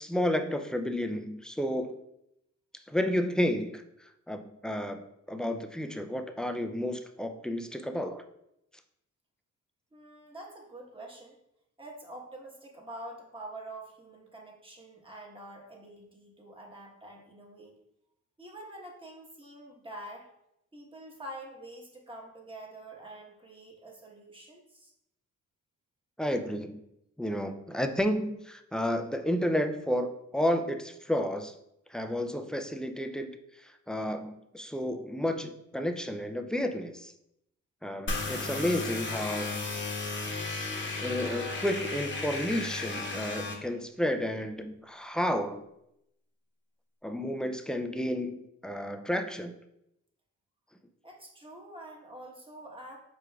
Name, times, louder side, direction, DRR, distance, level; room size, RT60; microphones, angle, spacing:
voice 1, 0.0-2.0 2.9-8.2 26.2-26.8 27.2-31.5 31.9-37.1 37.8-39.7 40.9-45.6 47.0-49.5, equal, ahead, 6 dB, 0.3 m, -31 dB
voice 2, 9.9-11.3 11.8-17.7 18.4-20.3 20.7-24.9 51.0-53.0, right 1 dB, 15° right, -1 dB, 1.1 m, -46 dB
sound 1, 38.1-43.5, left 3 dB, 40° left, 1.0 m, -34 dB
4.9 x 4.6 x 2.3 m, 0.81 s
cardioid pair, 90°, 31 cm